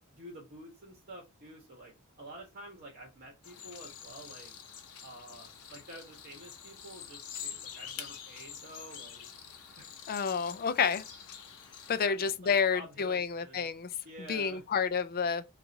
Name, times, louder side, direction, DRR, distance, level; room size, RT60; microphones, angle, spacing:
voice 1, 0.1-4.5 5.0-9.3 9.8-9.9 12.0-13.7 14.0-14.8, right 1 dB, 45° right, 1.2 m, -49 dB
sound 1, 3.4-12.0, left 8 dB, 85° left, 0.8 m, -46 dB
voice 2, 10.1-11.0 11.9-13.9 14.3-15.5, left 6 dB, 40° left, 0.4 m, -29 dB
4.6 x 2.5 x 3.9 m
head